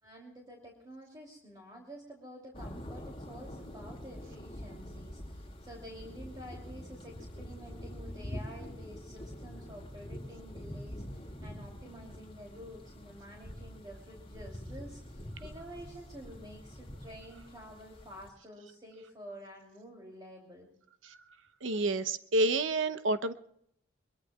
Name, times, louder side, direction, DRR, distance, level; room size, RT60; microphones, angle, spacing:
voice 1, 0.0-20.7, equal, 20° right, -2 dB, 3.0 m, -49 dB
sound 1, 2.5-18.3, equal, 25° left, 2.9 m, -45 dB
voice 2, 21.6-23.3, right 2 dB, 80° right, 11 dB, 0.8 m, -29 dB
23.5 x 22.5 x 2.4 m, 0.70 s
head